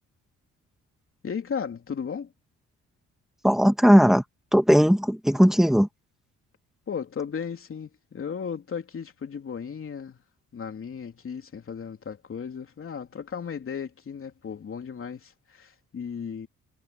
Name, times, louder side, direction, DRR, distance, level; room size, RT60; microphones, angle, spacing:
voice 1, 1.2-2.3 6.9-10.2 10.5-16.5, left 6 dB, 45° left, 3.2 m, -35 dB
voice 2, 3.4-4.2 4.5-5.9, equal, ahead, 2.5 m, -18 dB
cardioid pair, 90°, 30 cm